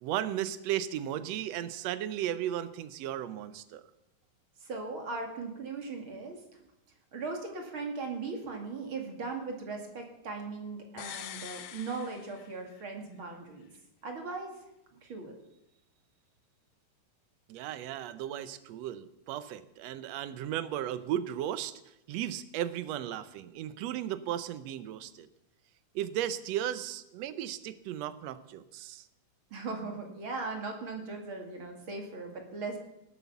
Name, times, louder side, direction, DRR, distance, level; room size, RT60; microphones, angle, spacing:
voice 1, 0.0-3.8 17.5-21.7 22.1-25.3 26.0-29.1, right 11 dB, 70° right, 13 dB, 1.8 m, -35 dB
voice 2, 4.6-6.4 7.1-13.7 14.0-14.5 15.0-15.3 29.5-32.8, right 3 dB, 45° right, 3 dB, 2.7 m, -38 dB
sound 1, 11.0-12.9 13.2-13.3, left 10 dB, 75° left, 2.1 m, -44 dB
19.0 x 8.4 x 7.1 m, 0.86 s
omnidirectional pair, 3.5 m